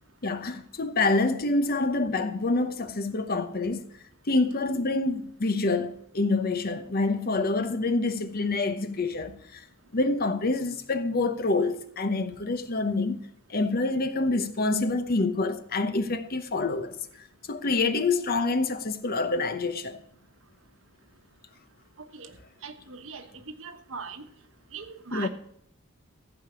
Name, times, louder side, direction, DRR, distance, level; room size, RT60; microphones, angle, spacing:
voice 1, 0.2-3.9 4.3-9.6 9.9-13.2 13.5-17.0 17.5-20.0 25.1-25.3, left 3 dB, 45° left, 0.9 m, -27 dB
voice 2, 22.6-24.2 24.7-25.3, right 5 dB, 70° right, 1.3 m, -40 dB
14.5 x 5.1 x 7.0 m
head